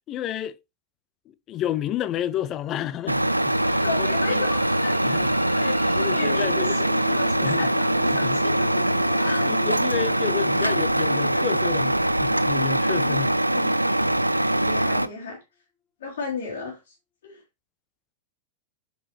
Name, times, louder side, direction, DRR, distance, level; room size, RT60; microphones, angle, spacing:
voice 1, 0.1-0.6 1.5-4.4 5.0-5.3 5.6-5.7 6.0-6.8 7.4-7.7 8.2-8.4 9.4-13.3, left 11 dB, 35° left, 0.5 m, -31 dB
sound 1, 2.3-14.4, left 4 dB, 15° left, 1.3 m, -43 dB
Truck, 3.1-15.1, right 1 dB, 85° right, 0.4 m, -23 dB
voice 2, 3.8-5.0 5.6-8.8 9.2-9.6 13.0-13.3 13.5-13.8 14.6-15.4 16.0-16.9 17.2-17.4, left 4 dB, 60° left, 3.4 m, -34 dB
8.2 x 5.4 x 3.2 m
figure-of-eight pair, 90°, 0 cm